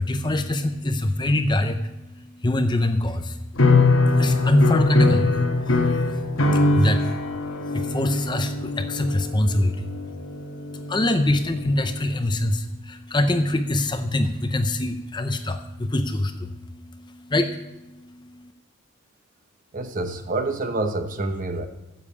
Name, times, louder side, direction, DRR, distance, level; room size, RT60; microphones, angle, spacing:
voice 1, 0.0-3.4 3.8-18.5, left 1 dB, 20° left, 8 dB, 0.6 m, -25 dB
sound 1, 3.6-11.9, left 3 dB, 70° left, 1.3 m, -22 dB
voice 2, 19.7-21.7, right 2 dB, 40° right, 8 dB, 0.9 m, -27 dB
9.8 x 7.3 x 7.0 m, 0.97 s
head